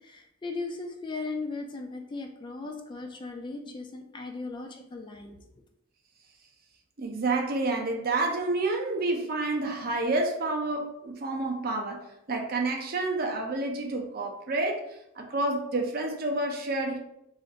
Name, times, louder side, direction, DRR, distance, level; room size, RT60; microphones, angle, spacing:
voice 1, 0.0-5.4, left 3 dB, 20° left, 3 dB, 0.3 m, -37 dB
voice 2, 7.0-12.0 12.3-14.8 15.2-17.0, right 2 dB, 45° right, 2 dB, 0.5 m, -29 dB
2.5 x 2.5 x 3.9 m, 0.80 s
head